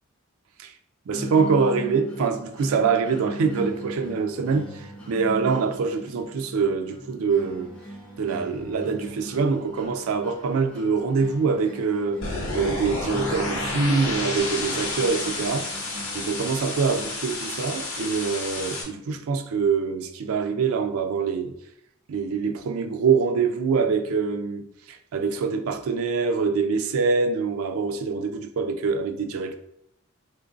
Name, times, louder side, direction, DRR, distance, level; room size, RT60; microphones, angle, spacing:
sound 1, 1.1-17.1, right 1 dB, 5° left, 0.6 m, -39 dB
voice 1, 1.1-7.7 8.2-12.3 12.5-21.5 22.1-29.6, right 5 dB, 85° right, 0.4 m, -25 dB
sound 2, 12.2-18.8, left 2 dB, 70° left, 0.7 m, -31 dB
3.5 x 2.6 x 2.5 m
head